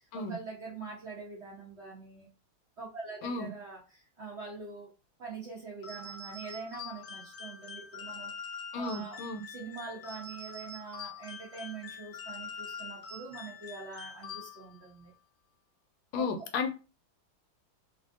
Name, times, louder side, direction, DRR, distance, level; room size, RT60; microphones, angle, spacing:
voice 1, 0.1-2.3 2.8-4.9 5.2-9.2 9.5-15.1 16.2-16.3, right 4 dB, 65° right, 0.6 m, -44 dB
sound 1, 5.8-14.9, left 4 dB, 60° left, 0.8 m, -44 dB
voice 2, 8.7-9.4 16.1-16.7, left 4 dB, 75° left, 1.3 m, -33 dB
3.0 x 2.6 x 2.4 m
omnidirectional pair, 2.2 m